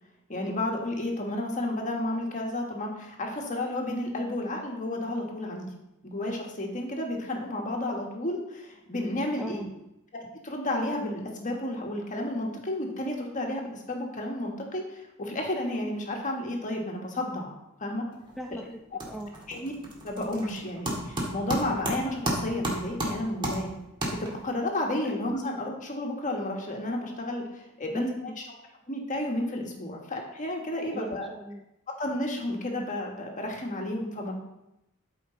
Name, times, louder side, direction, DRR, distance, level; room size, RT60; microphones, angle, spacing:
voice 1, 0.3-5.7 6.0-9.7 10.4-17.5 17.8-18.0 18.5-18.6 19.5-19.7 20.0-23.7 24.2-28.3 28.9-31.3 32.0-34.3, left 1 dB, 35° left, 1 dB, 1.6 m, -32 dB
voice 2, 9.4-9.7 18.4-19.3 27.9-28.4 30.9-31.6, equal, ahead, 1 dB, 0.4 m, -38 dB
sound 1, 18.1-18.5 18.8-24.6, right 1 dB, 20° right, 1.8 m, -33 dB
12.5 x 5.2 x 3.9 m, 0.89 s
head